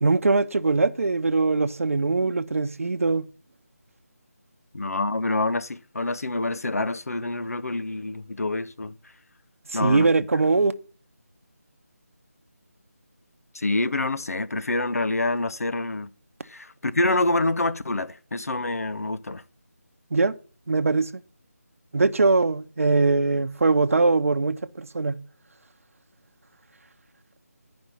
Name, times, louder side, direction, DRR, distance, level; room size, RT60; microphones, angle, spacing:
voice 1, 0.0-3.3 9.8-10.7 20.1-20.3 20.7-21.1 21.9-25.2, right 3 dB, 60° right, 0.8 m, -21 dB
voice 2, 4.7-8.9 9.7-10.1 13.5-16.1 16.4-19.4, left 2 dB, 70° left, 0.8 m, -26 dB
10.5 x 5.3 x 5.6 m
figure-of-eight pair, 170°, 9 cm